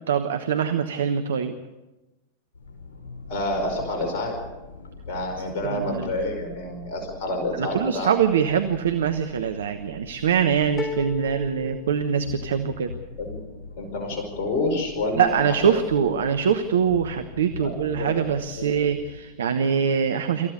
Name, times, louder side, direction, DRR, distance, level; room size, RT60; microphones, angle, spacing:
voice 1, 0.1-1.5 5.6-6.1 7.6-12.9 15.2-20.5, right 7 dB, 65° right, 8 dB, 1.1 m, -23 dB
sound 1, 2.5-19.2, left 3 dB, 70° left, 5.4 m, -42 dB
voice 2, 3.3-4.3 5.1-8.1 13.2-13.4 13.8-16.1 17.6-18.7, left 2 dB, 50° left, 3 dB, 5.1 m, -29 dB
sound 2, 10.8-12.8, left 5 dB, 20° left, 1.1 m, -34 dB
27.0 x 15.0 x 6.7 m, 1.1 s
figure-of-eight pair, 90°, 0 cm